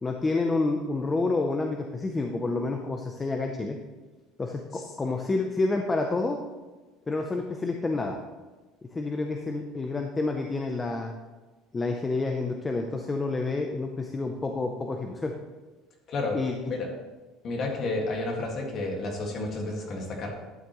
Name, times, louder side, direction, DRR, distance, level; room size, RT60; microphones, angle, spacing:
voice 1, 0.0-3.8 4.4-6.4 7.1-8.2 8.9-11.1 11.7-15.3 16.3-16.5, left 3 dB, 15° left, 3 dB, 0.6 m, -29 dB
voice 2, 16.1-16.4 16.7-16.9 17.4-20.3, left 2 dB, 35° left, 0 dB, 1.9 m, -31 dB
12.0 x 9.6 x 3.1 m, 1.2 s
cardioid pair, 175°, 0 cm